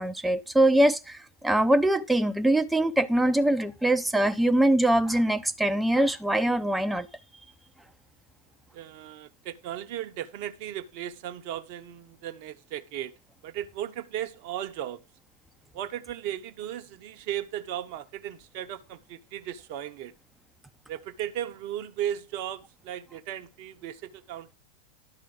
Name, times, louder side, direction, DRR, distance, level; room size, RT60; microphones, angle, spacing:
voice 1, 0.0-7.1, right 1 dB, 5° right, 0.7 m, -23 dB
voice 2, 8.7-13.1 13.4-15.0 15.7-20.1 20.9-24.6, right 11 dB, 45° right, 0.9 m, -36 dB
12.0 x 4.5 x 6.0 m
figure-of-eight pair, 90°, 0 cm